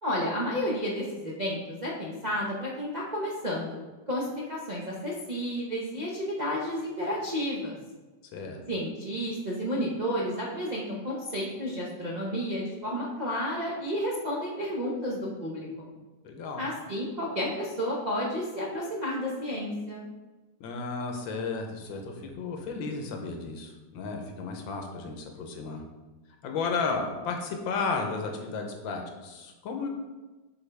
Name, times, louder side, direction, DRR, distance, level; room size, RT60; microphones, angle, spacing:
voice 1, 0.0-3.8 4.1-7.7 8.7-15.9 16.6-20.1, equal, 50° right, -6 dB, 0.5 m, -31 dB
voice 2, 16.2-16.6 20.6-25.8 26.4-29.9, left 4 dB, 85° left, 3 dB, 1.6 m, -33 dB
7.1 x 4.3 x 3.4 m, 1.2 s
omnidirectional pair, 2.1 m